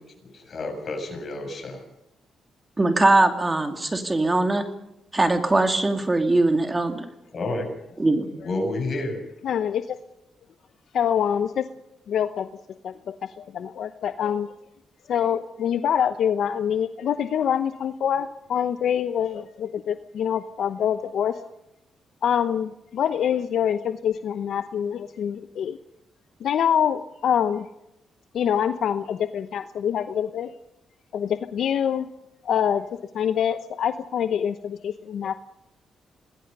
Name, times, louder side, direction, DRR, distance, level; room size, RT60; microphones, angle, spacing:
voice 1, 0.2-1.8 7.3-7.7 8.4-9.2, left 2 dB, 50° left, 4 dB, 7.3 m, -30 dB
voice 2, 2.8-4.6 5.1-7.1 8.0-8.3, right 2 dB, 25° right, 5 dB, 2.6 m, -21 dB
voice 3, 9.4-10.0 10.9-11.6 12.1-12.5 12.8-14.5 15.1-21.4 22.2-25.8 26.4-27.7 28.3-30.5 31.1-32.1 32.4-32.8 33.1-35.3, left 8 dB, 75° left, 10 dB, 0.8 m, -25 dB
27.0 x 20.5 x 5.5 m, 0.86 s
cardioid pair, 75°, 0 cm